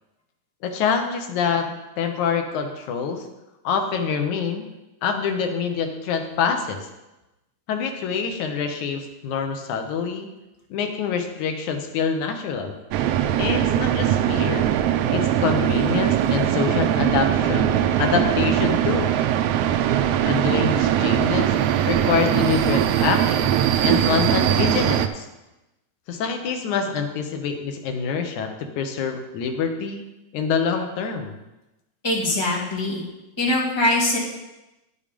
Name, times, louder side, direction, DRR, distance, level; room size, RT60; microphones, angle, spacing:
voice 1, 0.6-3.3 3.6-4.6 5.0-6.9 7.7-10.3 10.7-12.7 13.4-14.7 15.1-17.7 18.0-19.1 20.3-21.6 21.9-25.2 26.1-30.0 30.3-31.4, left 6 dB, 80° left, 5 dB, 2.5 m, -26 dB
sound 1, 12.9-25.1, right 10 dB, 85° right, 1.3 m, -21 dB
voice 2, 32.0-33.0 33.4-34.2, left 1 dB, 10° left, -3 dB, 1.5 m, -22 dB
10.0 x 7.1 x 5.2 m, 0.99 s
omnidirectional pair, 3.4 m